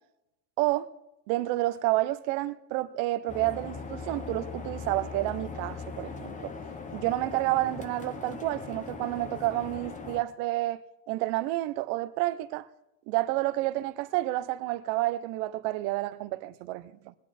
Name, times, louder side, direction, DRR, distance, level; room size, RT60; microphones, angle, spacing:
voice 1, 0.6-0.9 1.3-6.5 6.9-10.8 11.1-12.7 13.1-17.2, right 17 dB, 65° right, 0.9 m, -30 dB
sound 1, 3.3-10.2, left 4 dB, 20° left, 1.0 m, -40 dB
20.5 x 9.6 x 4.4 m
cardioid pair, 160°, 37 cm